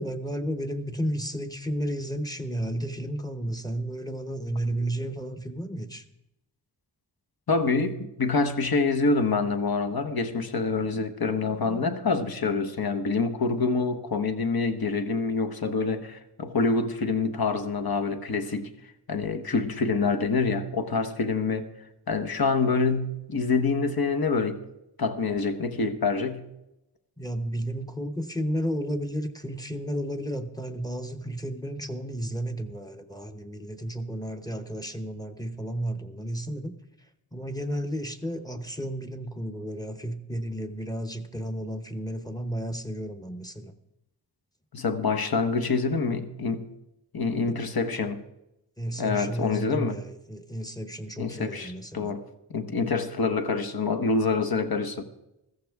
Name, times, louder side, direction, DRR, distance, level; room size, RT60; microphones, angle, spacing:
voice 1, 0.0-6.0 27.2-36.8 37.3-43.7 48.8-52.2, equal, 10° left, 0.9 m, -32 dB
voice 2, 7.5-18.7 19.1-21.7 22.1-24.6 25.0-26.5 44.7-46.7 47.1-48.2 49.0-50.0 51.2-52.2 52.5-55.0, left 4 dB, 55° left, 1.1 m, -26 dB
14.5 x 14.5 x 3.5 m
wide cardioid pair, 100°, 43 cm